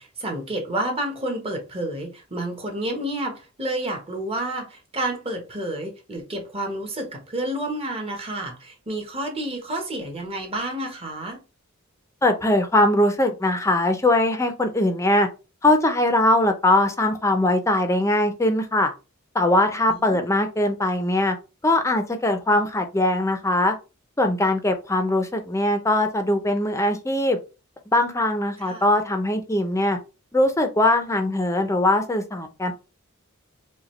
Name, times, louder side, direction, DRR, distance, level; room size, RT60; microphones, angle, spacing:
voice 1, 0.0-11.4 19.9-20.3 28.6-28.8, right 1 dB, 30° right, 1.1 m, -30 dB
voice 2, 12.2-15.3 15.6-18.9 19.3-21.4 21.6-23.7 24.2-27.4 27.9-30.0 30.3-32.7, left 1 dB, 15° left, 0.6 m, -21 dB
4.9 x 2.3 x 3.1 m
head